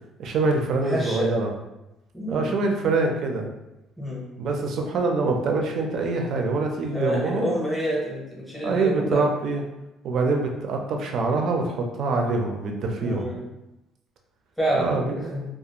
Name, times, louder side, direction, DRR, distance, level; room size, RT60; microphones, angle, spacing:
voice 1, 0.2-1.5 2.3-3.5 4.4-7.5 8.6-9.6 10.0-13.3 14.7-15.4, right 3 dB, 45° right, 2 dB, 0.4 m, -25 dB
voice 2, 0.8-1.3 2.1-2.6 4.0-4.2 6.9-9.2 13.0-13.4 14.6-15.4, equal, ahead, -6 dB, 0.7 m, -28 dB
2.4 x 2.3 x 2.8 m, 0.94 s
cardioid pair, 170°, 0 cm